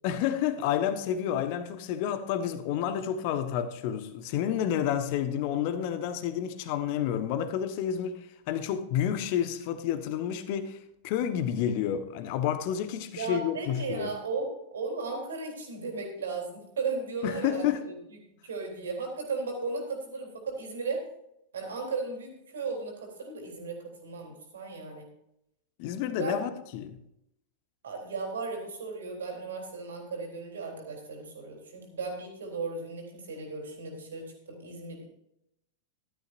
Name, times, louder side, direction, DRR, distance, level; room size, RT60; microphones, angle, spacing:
voice 1, 0.0-10.8 11.0-14.1 17.2-17.8 25.8-27.0, left 9 dB, 45° left, 1.2 m, -30 dB
voice 2, 13.1-17.9 18.4-21.0 21.5-25.1 26.2-26.4 27.8-35.1, right 4 dB, 65° right, 3.5 m, -36 dB
14.5 x 12.5 x 2.6 m
figure-of-eight pair, 90°, 0 cm